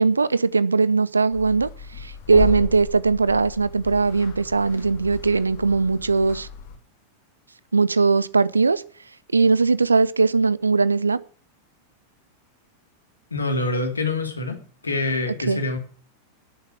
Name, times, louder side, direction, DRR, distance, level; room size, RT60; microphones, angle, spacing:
voice 1, 0.0-6.5 7.7-8.8 9.3-11.2 15.5-15.6, right 4 dB, 80° right, 0.6 m, -20 dB
sound 1, 1.3-6.8, left 7 dB, 50° left, 2.6 m, -35 dB
voice 2, 13.3-14.6 14.8-15.8, left 2 dB, 80° left, 2.6 m, -25 dB
12.5 x 6.9 x 8.3 m
figure-of-eight pair, 90°, 0 cm